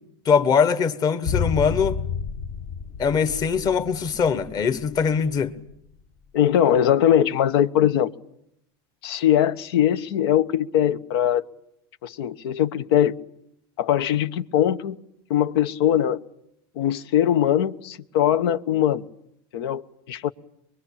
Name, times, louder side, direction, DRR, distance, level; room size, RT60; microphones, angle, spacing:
voice 1, 0.2-2.0 3.0-5.6, left 6 dB, 30° left, 1.4 m, -22 dB
sound 1, 1.2-5.5 5.7-5.8, left 6 dB, 45° left, 1.6 m, -30 dB
voice 2, 6.3-8.1 9.0-11.4 12.0-13.2 13.8-15.0 15.3-16.2 16.8-19.1 19.5-19.8 20.1-20.3, left 10 dB, 75° left, 1.2 m, -21 dB
23.5 x 23.0 x 8.6 m
supercardioid pair, 140°, 13 cm